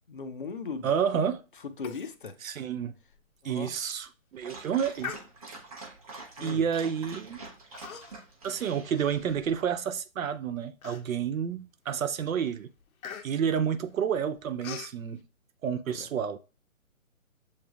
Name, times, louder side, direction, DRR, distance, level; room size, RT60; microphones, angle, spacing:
voice 1, 0.1-0.9 1.8-2.3 3.4-3.7 6.4-6.6 15.9-16.1, left 5 dB, 40° left, 0.4 m, -38 dB
voice 2, 0.8-1.4 2.4-2.9 3.4-5.1 6.4-7.4 8.4-12.7 13.2-15.2 15.6-16.4, right 7 dB, 75° right, 0.6 m, -30 dB
Human voice, 1.8-2.2 2.5-2.6 3.1-3.2 3.8-4.0 5.0-5.7 6.5-6.7 7.7-8.3 8.7-9.8 10.2-10.3 10.8-11.4 11.9-12.1 12.4-15.0, left 8 dB, 80° left, 0.7 m, -43 dB
Dog, 4.4-9.3, right 3 dB, 25° right, 0.7 m, -46 dB
7.1 x 3.2 x 2.3 m
hypercardioid pair, 160°, 41 cm